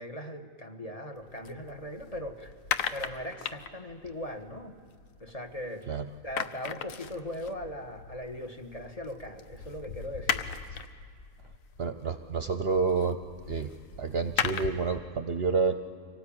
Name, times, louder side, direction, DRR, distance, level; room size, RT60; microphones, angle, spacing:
voice 1, 0.0-2.5 2.9-4.7 5.2-5.9 6.2-10.5, equal, 25° left, 3 dB, 1.4 m, -39 dB
sound 1, 1.2-5.8 6.1-15.0, left 7 dB, 70° left, 1.2 m, -38 dB
voice 2, 11.8-13.2 13.5-13.7 14.0-15.7, right 5 dB, 55° right, 9 dB, 0.9 m, -28 dB
25.0 x 18.0 x 8.8 m, 2.1 s
omnidirectional pair, 1.5 m